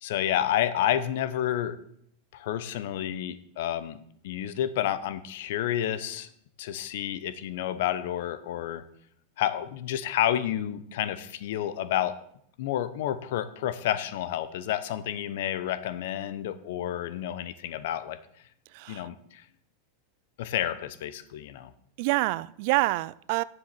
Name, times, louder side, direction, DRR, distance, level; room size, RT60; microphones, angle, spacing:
voice 1, 0.0-1.8 2.3-6.3 6.6-8.8 9.4-12.2 12.6-18.2 18.9-19.4 20.4-21.7, left 11 dB, 70° left, 0.8 m, -30 dB
voice 2, 18.7-19.1 22.0-23.4, right 20 dB, 55° right, 0.4 m, -27 dB
7.2 x 7.0 x 8.0 m
supercardioid pair, 145°, 0 cm